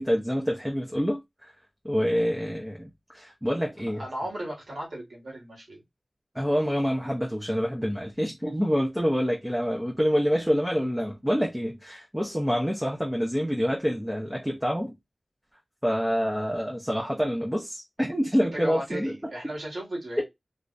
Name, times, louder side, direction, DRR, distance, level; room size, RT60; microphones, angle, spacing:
voice 1, 0.0-1.5 1.8-4.0 6.3-15.0 15.8-19.1 20.2-20.3, equal, 10° right, 0.8 m, -27 dB
voice 2, 3.8-5.8 18.5-20.2, right 1 dB, 80° right, 1.9 m, -36 dB
3.3 x 2.6 x 2.5 m
wide cardioid pair, 60°, 0 cm